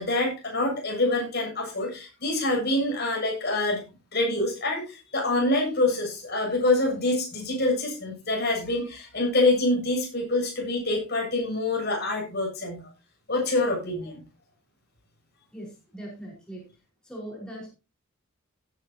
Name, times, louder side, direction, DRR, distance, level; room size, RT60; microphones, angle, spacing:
voice 1, 0.0-3.8 4.1-12.9 13.3-14.2, left 2 dB, 50° left, 0 dB, 7.6 m, -26 dB
voice 2, 15.5-16.7 17.0-17.7, right 1 dB, 5° left, -4 dB, 5.1 m, -40 dB
17.0 x 10.0 x 2.9 m, 0.31 s
head